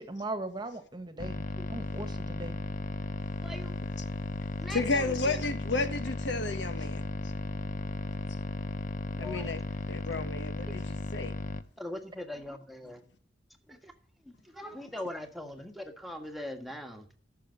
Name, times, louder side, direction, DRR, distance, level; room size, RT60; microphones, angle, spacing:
voice 1, 0.0-2.6, right 2 dB, 25° right, 1.5 m, -39 dB
sound 1, 1.2-11.6, left 2 dB, 45° left, 0.8 m, -35 dB
voice 2, 3.4-3.7 4.6-5.4 9.1-9.5 11.8-13.0 13.7-13.9 14.3-17.0, left 1 dB, ahead, 1.6 m, -41 dB
voice 3, 4.7-7.0 9.2-9.6 9.9-11.3, left 3 dB, 75° left, 1.4 m, -32 dB
14.5 x 6.7 x 5.2 m
head